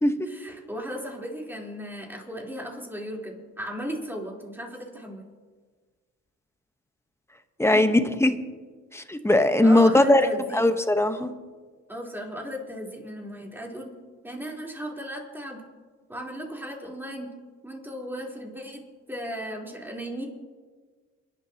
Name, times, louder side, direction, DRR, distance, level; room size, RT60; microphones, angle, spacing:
voice 1, 0.2-5.3 7.7-7.8 9.6-10.6 11.9-13.9 14.2-15.6 16.1-17.3 17.6-18.8 19.1-20.2, equal, 5° right, -2 dB, 3.8 m, -36 dB
voice 2, 7.6-8.3 8.9-10.2 10.5-11.3, left 1 dB, 10° left, 8 dB, 1.1 m, -19 dB
30.0 x 11.0 x 2.9 m, 1.4 s
cardioid pair, 90°, 30 cm